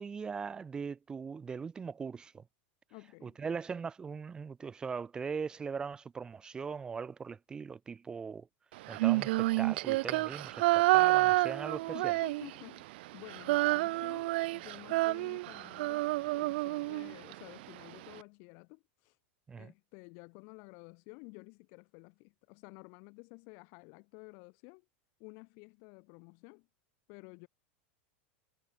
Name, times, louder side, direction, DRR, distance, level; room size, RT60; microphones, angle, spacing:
voice 1, 0.0-2.4 3.2-8.5 8.9-12.1 19.5-19.7, right 5 dB, 10° right, 1.3 m, -40 dB
voice 2, 2.9-3.4 11.9-12.9 13.1-19.2 19.6-24.8 25.2-26.7 27.1-27.5, left 36 dB, 45° left, 4.4 m, -52 dB
Female singing, 8.9-12.8 13.1-17.3, right 20 dB, 55° right, 0.3 m, -29 dB
supercardioid pair, 170°, 7 cm